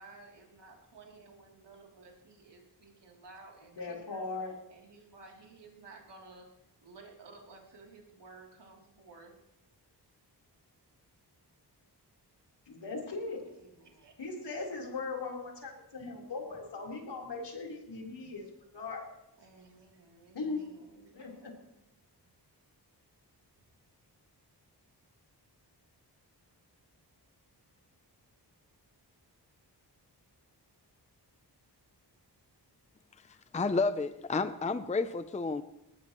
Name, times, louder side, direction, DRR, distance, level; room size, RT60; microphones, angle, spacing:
voice 1, 0.0-4.2 4.7-9.4 11.1-11.4 13.5-14.1 19.4-21.7 22.2-22.3, right 3 dB, 80° right, 0 dB, 3.2 m, -55 dB
voice 2, 3.8-4.5 12.7-13.4 14.2-18.5 18.7-19.1 20.3-20.6 21.1-21.5, left 3 dB, 80° left, 0 dB, 4.1 m, -39 dB
voice 3, 33.5-35.6, left 3 dB, 15° left, 11 dB, 0.5 m, -30 dB
19.5 x 19.5 x 3.1 m, 0.86 s
wide cardioid pair, 145°, 41 cm